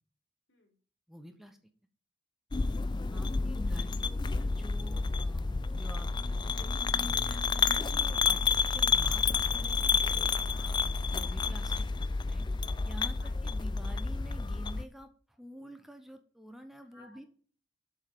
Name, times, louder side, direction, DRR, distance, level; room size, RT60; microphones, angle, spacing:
voice 1, 1.1-1.6 3.1-10.3 11.1-12.5 12.8-17.2, equal, ahead, 6 dB, 0.9 m, -49 dB
sound 1, 2.5-14.8, left 4 dB, 25° left, 0.4 m, -30 dB
voice 2, 10.5-11.4 11.8-11.9 13.2-13.3 16.9-17.3, left 2 dB, 70° left, 3 dB, 3.2 m, -58 dB
7.5 x 6.5 x 5.0 m, 0.43 s
head